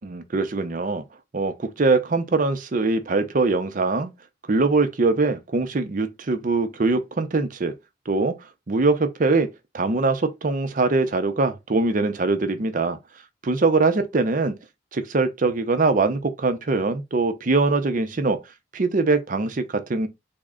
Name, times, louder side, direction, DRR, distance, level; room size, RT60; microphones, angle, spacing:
voice 1, 0.0-1.0 1.3-4.1 4.5-7.7 8.1-8.4 8.7-9.5 9.7-13.0 13.4-14.5 14.9-18.4 18.7-20.1, right 3 dB, 45° right, 0.6 m, -22 dB
3.6 x 2.1 x 3.6 m
head